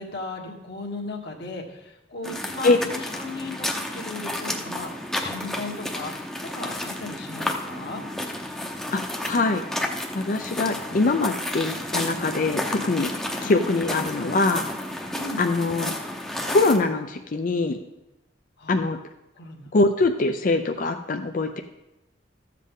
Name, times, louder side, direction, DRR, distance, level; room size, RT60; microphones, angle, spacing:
voice 1, 0.0-8.1 13.3-13.6 15.2-15.4 18.6-18.8 19.4-19.7, left 2 dB, 60° left, 1 dB, 1.4 m, -36 dB
sound 1, 2.2-16.8, left 1 dB, 5° left, 0.7 m, -31 dB
voice 2, 8.9-9.6 10.1-13.1 13.4-14.7 15.4-15.9 16.5-17.8 18.7-19.0 19.7-21.6, left 3 dB, 45° left, 5 dB, 0.5 m, -23 dB
13.0 x 7.5 x 3.7 m, 0.94 s
head